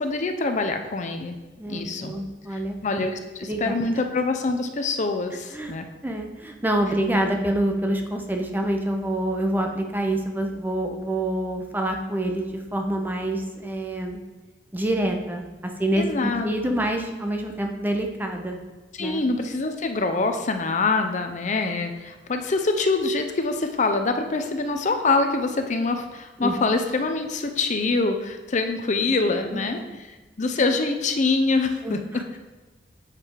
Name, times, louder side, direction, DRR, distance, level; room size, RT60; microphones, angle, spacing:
voice 1, 0.0-1.3 1.7-2.1 2.5-5.9 15.9-16.7 19.0-29.8 30.1-32.4, left 3 dB, 40° left, 6 dB, 0.6 m, -25 dB
voice 2, 1.6-2.8 3.5-3.7 5.5-5.7 6.0-14.2 14.7-15.4 15.8-18.5 19.0-19.2 26.4-26.5 29.5-29.6 29.9-30.0 31.8-32.2, right 1 dB, 10° right, 3 dB, 0.7 m, -26 dB
7.4 x 5.1 x 4.6 m, 1.2 s
head